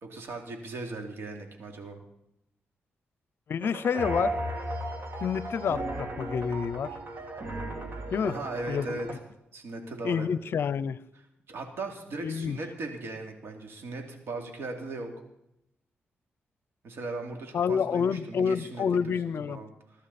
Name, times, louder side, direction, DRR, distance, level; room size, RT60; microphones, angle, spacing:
voice 1, 0.0-2.0 8.2-9.1 9.5-10.3 11.5-15.1 16.8-18.8 19.5-19.7, right 3 dB, 75° right, 2.9 m, -38 dB
voice 2, 3.5-4.4 5.2-7.0 8.1-8.4 8.7-9.2 10.0-11.0 12.2-12.6 17.5-19.6, left 7 dB, 65° left, 0.6 m, -28 dB
sound 1, 3.6-9.1, right 1 dB, 55° right, 2.8 m, -35 dB
21.5 x 11.5 x 4.3 m
cardioid pair, 80°, 4 cm